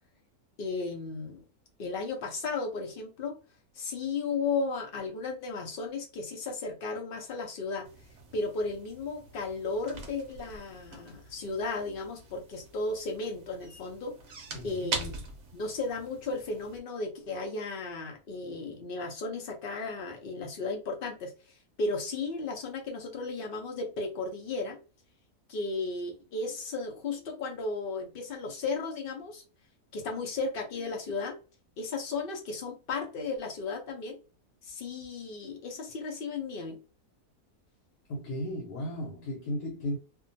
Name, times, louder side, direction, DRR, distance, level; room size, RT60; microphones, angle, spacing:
voice 1, 0.6-1.4 1.8-3.4 3.7-7.9 8.3-14.2 14.6-15.1 15.5-21.3 21.8-24.8 25.5-29.4 29.9-31.4 31.8-34.2 34.6-36.8, left 3 dB, 55° left, 0.6 m, -34 dB
sound 1, 7.8-16.8, right 4 dB, 60° right, 0.8 m, -43 dB
voice 2, 14.5-15.0 38.1-40.0, left 1 dB, 85° left, 1.2 m, -35 dB
2.6 x 2.2 x 2.6 m
omnidirectional pair, 1.6 m